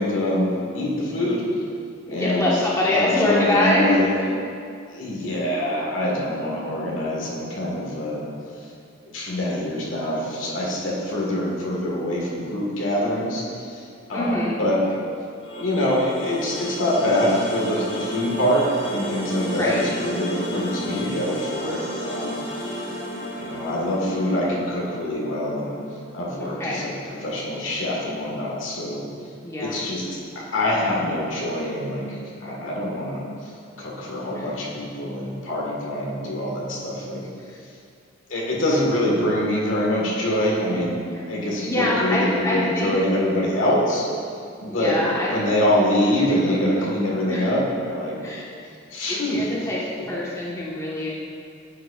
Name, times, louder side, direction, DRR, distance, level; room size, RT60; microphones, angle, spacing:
voice 1, 0.0-1.4 2.1-2.5 2.9-4.1 4.9-8.2 9.1-13.8 14.1-14.8 15.6-22.4 23.4-25.7 26.1-26.9 27.2-29.0 29.6-30.0 30.5-33.5 33.8-37.2 38.3-41.0 41.3-44.0 44.6-45.0 45.3-48.2 48.9-49.5, left 1 dB, 85° left, -4 dB, 1.5 m, -24 dB
voice 2, 2.1-4.3 14.1-14.5 19.6-19.8 26.4-26.8 29.4-29.8 34.3-34.5 37.5-37.6 41.5-43.0 44.7-45.6 46.2-46.7 47.3-47.5 48.2-48.5 49.1-49.8 50.1-51.1, left 1 dB, 15° left, -6 dB, 1.2 m, -24 dB
sound 1, 15.4-26.5, equal, 65° left, 1.2 m, -33 dB
9.1 x 7.6 x 2.4 m, 2.4 s
head